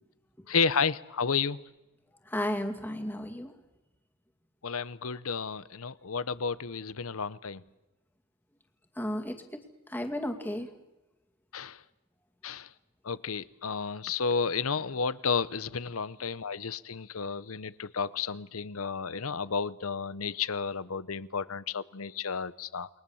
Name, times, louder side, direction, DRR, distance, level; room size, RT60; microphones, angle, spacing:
voice 1, 0.5-1.6 4.6-7.6 11.5-11.8 12.4-12.7 13.0-22.9, left 5 dB, 75° left, 0.9 m, -32 dB
voice 2, 2.3-3.5 9.0-9.4 9.9-10.7, left 1 dB, 10° left, 2.3 m, -33 dB
29.5 x 21.5 x 7.2 m
head